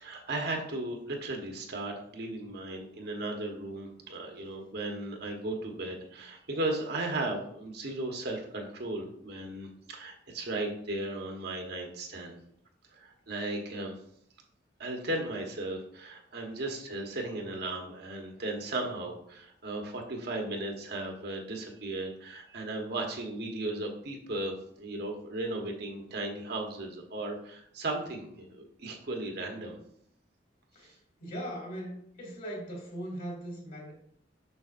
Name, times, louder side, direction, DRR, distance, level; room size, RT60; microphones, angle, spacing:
voice 1, 0.0-12.4 12.9-13.9 14.8-29.8 30.8-30.9, right 2 dB, 65° right, 2 dB, 1.3 m, -36 dB
voice 2, 31.2-33.9, equal, 50° left, -2 dB, 2.7 m, -39 dB
7.0 x 6.2 x 2.6 m, 0.68 s
head